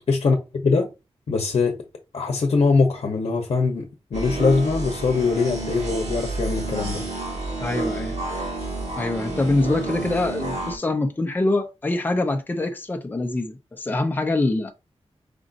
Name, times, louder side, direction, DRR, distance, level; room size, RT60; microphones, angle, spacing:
voice 1, 0.1-0.9 1.3-1.8 2.1-7.0, left 4 dB, 65° left, 0.8 m, -22 dB
sound 1, 4.1-10.8, right 2 dB, 80° right, 1.9 m, -30 dB
voice 2, 7.6-8.2 9.0-14.7, left 2 dB, 15° left, 0.5 m, -24 dB
5.1 x 2.5 x 3.8 m
wide cardioid pair, 175°, 11 cm